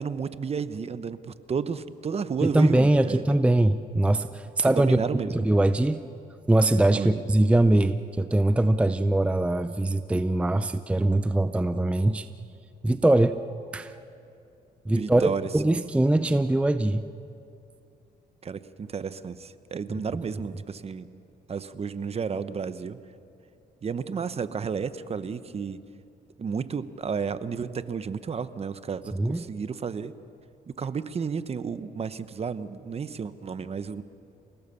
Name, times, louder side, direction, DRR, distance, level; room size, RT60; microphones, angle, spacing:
voice 1, 0.0-3.2 4.6-5.4 6.9-7.1 15.0-15.9 18.4-21.1 21.5-23.0 23.8-25.8 26.4-30.1 30.7-34.0, right 6 dB, 35° right, 13 dB, 0.9 m, -32 dB
voice 2, 2.4-5.0 5.3-6.0 6.5-12.3 12.8-13.4 13.7-13.9 14.9-17.0 29.1-29.5, right 1 dB, 5° right, 11 dB, 0.5 m, -22 dB
28.5 x 18.0 x 6.9 m, 2.6 s
cardioid pair, 105°, 17 cm